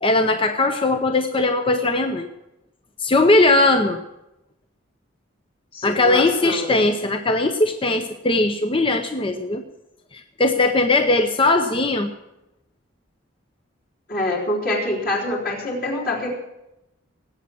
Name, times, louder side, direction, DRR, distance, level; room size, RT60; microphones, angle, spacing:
voice 1, 0.0-2.3 3.0-4.0 5.8-9.6 10.1-12.1, left 2 dB, 25° left, 7 dB, 0.7 m, -19 dB
voice 2, 5.7-6.8 14.1-16.3, left 1 dB, 50° left, -3 dB, 3.7 m, -25 dB
19.0 x 8.5 x 7.1 m, 0.92 s
head